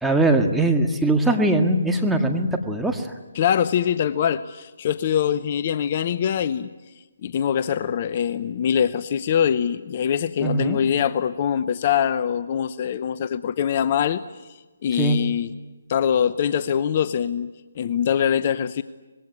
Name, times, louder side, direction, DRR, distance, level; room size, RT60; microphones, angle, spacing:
voice 1, 0.0-3.1 10.4-10.8 15.0-15.2, right 2 dB, 5° right, 2 dB, 1.9 m, -21 dB
voice 2, 3.3-6.7 7.2-15.6 15.9-18.8, left 8 dB, 40° left, 14 dB, 0.8 m, -23 dB
25.0 x 21.0 x 9.8 m, 1.2 s
figure-of-eight pair, 145°, 0 cm